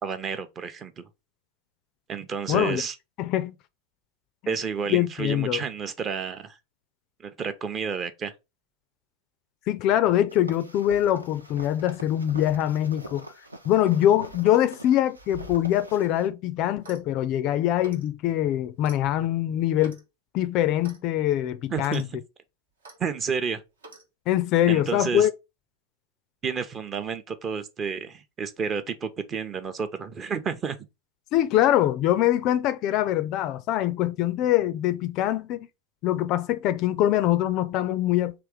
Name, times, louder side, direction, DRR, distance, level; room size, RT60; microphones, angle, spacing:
voice 1, 0.0-1.1 2.1-3.0 4.5-6.6 7.2-8.3 21.7-22.2 23.0-23.6 24.6-25.3 26.4-30.8, right 6 dB, 25° right, 0.6 m, -30 dB
voice 2, 2.5-2.8 3.2-3.5 4.9-5.6 9.7-13.2 13.7-20.0 20.3-22.0 24.3-25.3 31.3-35.7 36.0-38.3, left 12 dB, 40° left, 0.4 m, -23 dB
sound 1, 10.3-16.3, right 1 dB, 85° right, 0.6 m, -43 dB
Clock, 16.7-17.1 17.8-18.1 18.8-19.0 19.8-20.1 20.8-21.0 21.8-22.0 22.8-23.0 23.8-24.1, right 2 dB, 70° right, 1.0 m, -47 dB
3.4 x 3.0 x 4.8 m
figure-of-eight pair, 90°, 0 cm